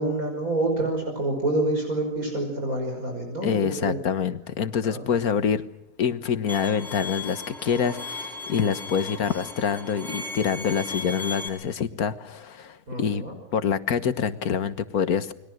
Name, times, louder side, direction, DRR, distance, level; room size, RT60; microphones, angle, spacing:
voice 1, 0.0-4.0 4.9-5.0 12.9-13.3, right 2 dB, 70° right, 2 dB, 6.3 m, -27 dB
voice 2, 3.4-5.6 6.0-13.2 13.5-15.3, left 7 dB, 75° left, 12 dB, 1.7 m, -26 dB
Bowed string instrument, 6.5-11.5, left 3 dB, ahead, 4.3 m, -36 dB
29.5 x 21.5 x 6.4 m, 0.84 s
omnidirectional pair, 1.6 m